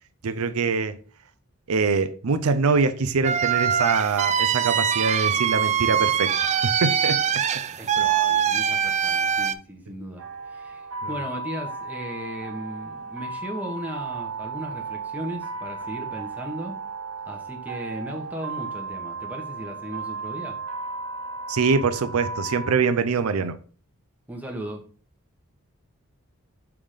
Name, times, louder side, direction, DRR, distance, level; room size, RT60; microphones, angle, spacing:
voice 1, 0.2-1.0 1.7-6.3 6.6-7.6 21.5-23.6, right 4 dB, 80° right, 0.5 m, -24 dB
sound 1, 3.2-9.5, right 8 dB, 30° right, 0.3 m, -23 dB
voice 2, 7.8-16.8 17.2-20.6 24.3-24.8, equal, 5° right, 1.1 m, -36 dB
sound 2, 10.2-22.7, right 4 dB, 60° right, 1.2 m, -35 dB
5.9 x 3.6 x 5.0 m
head